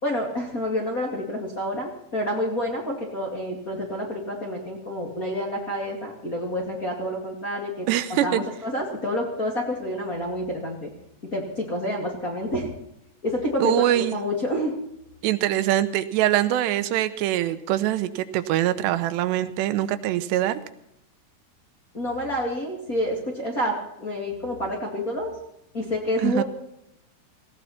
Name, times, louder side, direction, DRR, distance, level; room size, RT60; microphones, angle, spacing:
voice 1, 0.0-10.9 11.3-12.7 13.2-14.8 21.9-25.3 25.7-26.4, left 1 dB, 30° left, -2 dB, 2.0 m, -28 dB
voice 2, 7.9-8.4 13.6-14.2 15.2-20.6 26.2-26.4, right 13 dB, 90° right, 11 dB, 3.1 m, -23 dB
18.5 x 17.0 x 4.3 m, 0.80 s
omnidirectional pair, 4.8 m